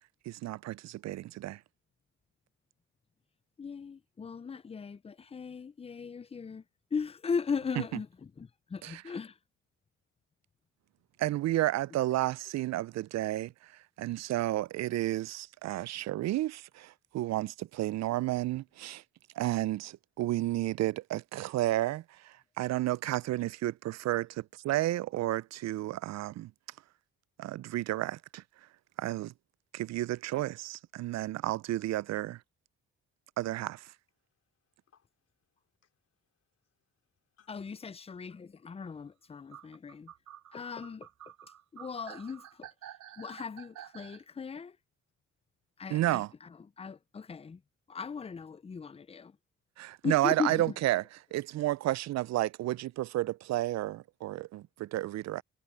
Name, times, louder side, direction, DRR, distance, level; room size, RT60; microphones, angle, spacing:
voice 1, 0.3-1.6 8.8-9.0 11.2-13.5 14.0-19.0 19.4-22.0 22.6-26.5 27.4-28.4 29.0-29.3 29.7-32.4 33.4-33.8 45.9-46.3 49.8-51.0 51.3-55.4, right 15 dB, 60° right, 0.4 m, -31 dB
voice 2, 3.6-6.6 6.9-8.1 8.4-9.3 37.5-40.1 40.5-41.1 41.7-42.7 43.2-44.7 45.8-46.2 46.8-47.6 47.9-49.3 50.0-50.6, left 5 dB, 20° left, 0.5 m, -37 dB
voice 3, 34.2-37.7, left 8 dB, 55° left, 4.8 m, -72 dB
sound 1, 39.5-44.2, right 11 dB, 75° right, 6.0 m, -50 dB
cardioid pair, 90°, 30 cm